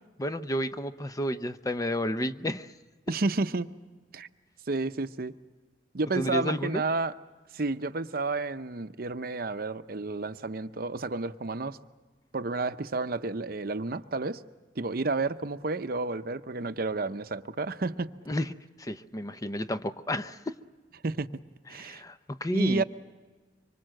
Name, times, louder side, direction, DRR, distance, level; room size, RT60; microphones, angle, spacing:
voice 1, 0.2-2.7 6.1-6.9 18.3-20.6 21.7-22.8, equal, 20° left, 0.7 m, -31 dB
voice 2, 3.1-3.7 4.1-4.3 4.7-5.3 5.9-7.1 7.5-11.8 12.3-14.4 14.8-18.1 21.0-21.3 21.7-22.0 22.5-22.8, right 3 dB, 55° right, 0.8 m, -31 dB
25.5 x 24.5 x 7.7 m
head